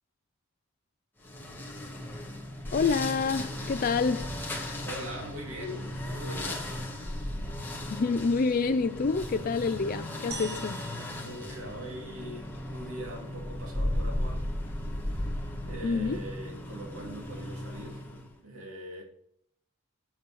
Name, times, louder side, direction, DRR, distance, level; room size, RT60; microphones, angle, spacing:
sound 1, 1.2-18.4, left 1 dB, 10° left, 1.6 m, -36 dB
voice 1, 2.7-4.3 7.9-10.8 15.8-16.2, left 4 dB, 40° left, 0.4 m, -27 dB
voice 2, 4.8-6.8 11.2-14.5 15.0-15.3 15.7-18.1 18.4-19.0, equal, 85° right, 2.5 m, -42 dB
sound 2, 10.3-12.7, right 4 dB, 50° right, 1.3 m, -45 dB
7.9 x 7.6 x 4.6 m
head